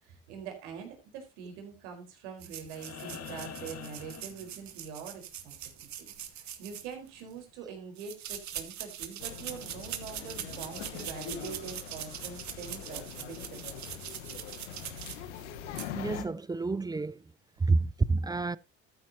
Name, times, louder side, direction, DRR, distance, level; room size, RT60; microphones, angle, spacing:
voice 1, 0.0-6.1 6.3-13.8, right 6 dB, 80° right, 4.4 m, -44 dB
sound 1, 2.4-7.3 8.0-15.4 15.7-15.9, right 10 dB, 55° right, 2.1 m, -42 dB
sound 2, 2.7-5.0 6.9-7.0, left 8 dB, 45° left, 1.8 m, -45 dB
sound 3, 9.2-16.2, left 10 dB, 90° left, 1.4 m, -43 dB
voice 2, 15.9-17.2 17.6-18.6, right 3 dB, 10° right, 0.5 m, -28 dB
13.0 x 9.6 x 2.9 m
hypercardioid pair, 80°, 35 cm